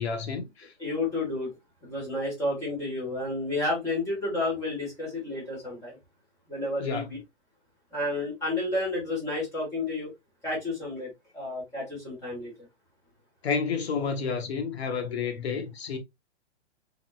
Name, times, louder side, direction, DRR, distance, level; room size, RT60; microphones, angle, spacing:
voice 1, 0.0-0.7 6.8-7.1 13.4-16.0, left 5 dB, 65° left, 1.0 m, -30 dB
voice 2, 0.8-1.5 1.8-6.0 6.5-7.2 7.9-10.1 10.4-12.5, left 2 dB, 10° left, 1.5 m, -31 dB
3.9 x 3.6 x 2.3 m
hypercardioid pair, 175°, 35 cm